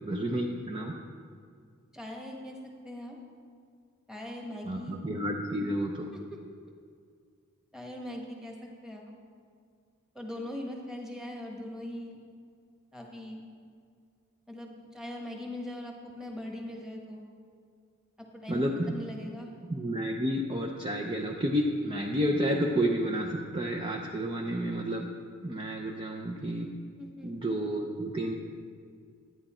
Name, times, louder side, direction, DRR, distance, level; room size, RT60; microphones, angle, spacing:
voice 1, 0.1-1.0 4.7-6.1 18.5-19.0 19.7-25.1 25.4-26.7 27.2-28.4, equal, 25° right, 1 dB, 0.6 m, -30 dB
voice 2, 1.9-2.6 2.8-3.1 4.1-5.0 7.7-9.1 10.1-12.2 12.9-13.4 14.5-17.2 18.4-19.5 27.0-27.3, left 1 dB, 5° right, 0 dB, 1.3 m, -40 dB
11.0 x 9.5 x 4.3 m, 2.2 s
head